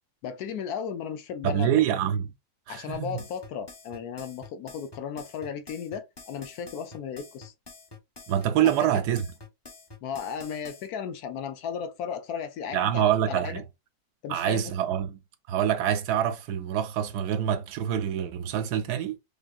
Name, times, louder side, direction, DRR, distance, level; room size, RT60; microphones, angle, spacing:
voice 1, 0.2-1.7 2.7-7.5 8.6-8.9 10.0-13.5 14.2-14.7, left 7 dB, 70° left, 1.0 m, -35 dB
voice 2, 1.4-2.3 2.7-3.2 8.3-9.3 12.7-13.6 14.3-15.2 15.5-19.2, right 10 dB, 75° right, 1.1 m, -26 dB
sound 1, 2.9-10.9, left 3 dB, 20° left, 0.9 m, -47 dB
5.1 x 2.6 x 2.3 m
omnidirectional pair, 1.8 m